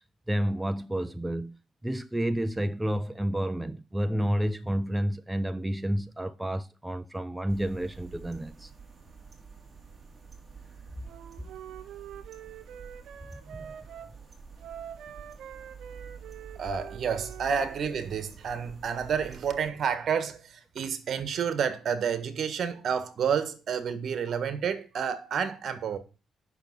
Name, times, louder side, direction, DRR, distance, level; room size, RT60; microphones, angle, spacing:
voice 1, 0.3-1.6 1.8-8.7 13.5-13.6, equal, 10° right, 0.5 m, -30 dB
sound 1, 7.5-19.7, right 6 dB, 25° right, 3.0 m, -48 dB
Wind instrument woodwind instrument, 11.0-14.1 14.6-17.8, right 9 dB, 75° right, 1.0 m, -45 dB
voice 2, 16.5-26.0, right 7 dB, 60° right, 1.5 m, -30 dB
8.9 x 6.2 x 6.0 m
cardioid pair, 90°, 0 cm